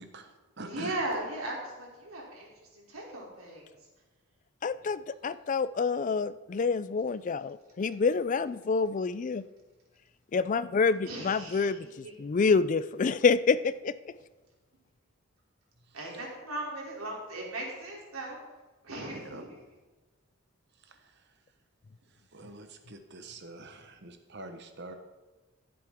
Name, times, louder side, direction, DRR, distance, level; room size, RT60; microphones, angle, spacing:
voice 1, 0.0-1.0 15.8-16.2 19.1-19.4 20.8-21.3 22.1-24.9, right 2 dB, 55° right, 7 dB, 1.1 m, -46 dB
voice 2, 0.6-3.7 11.0-11.7 12.0-12.1 15.9-18.4 18.8-19.5, right 1 dB, 90° right, -2 dB, 3.2 m, -37 dB
voice 3, 4.6-9.4 10.3-13.9, left 5 dB, 35° left, 15 dB, 0.3 m, -27 dB
15.0 x 7.8 x 3.6 m, 1.2 s
head